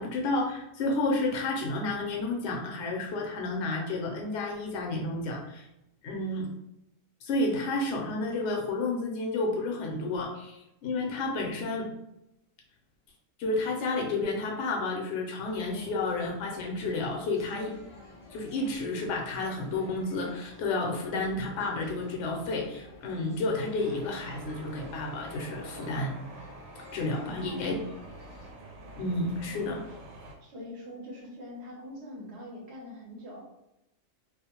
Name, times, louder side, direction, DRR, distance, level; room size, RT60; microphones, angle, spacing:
voice 1, 0.0-5.7 6.0-6.5 7.3-11.9 13.4-17.7 18.3-26.2 26.9-27.7 29.0-29.8, left 2 dB, 65° left, 0 dB, 0.9 m, -31 dB
sound 1, 15.5-28.5, left 1 dB, 35° left, 0.7 m, -51 dB
sound 2, 23.8-30.4, right 2 dB, 90° right, 1.0 m, -47 dB
voice 2, 27.2-27.9 29.5-29.8 30.4-33.4, left 1 dB, 60° right, -3 dB, 0.9 m, -44 dB
2.5 x 2.1 x 2.8 m, 0.87 s
omnidirectional pair, 1.4 m